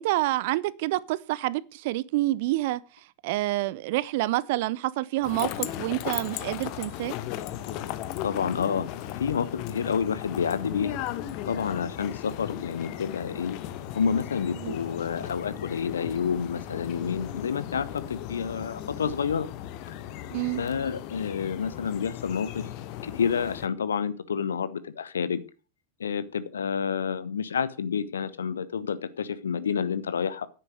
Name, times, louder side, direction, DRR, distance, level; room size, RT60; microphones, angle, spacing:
voice 1, 0.0-7.2 14.6-14.8 20.3-20.6, right 17 dB, 50° right, 0.6 m, -28 dB
sound 1, 5.2-23.7, left 12 dB, 45° left, 1.1 m, -36 dB
voice 2, 8.2-8.9 9.2-11.0 11.4-13.6 13.9-19.5 20.6-22.7 23.0-25.4 26.0-30.5, left 6 dB, 70° left, 1.0 m, -29 dB
10.0 x 8.9 x 6.3 m
figure-of-eight pair, 90°, 0 cm